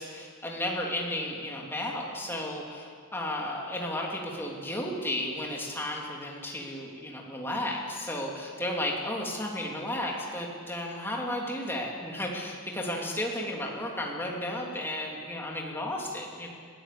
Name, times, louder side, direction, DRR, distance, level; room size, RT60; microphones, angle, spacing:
voice 1, 0.0-16.5, left 1 dB, 10° left, -1 dB, 2.9 m, -33 dB
20.5 x 16.0 x 8.5 m, 2.1 s
head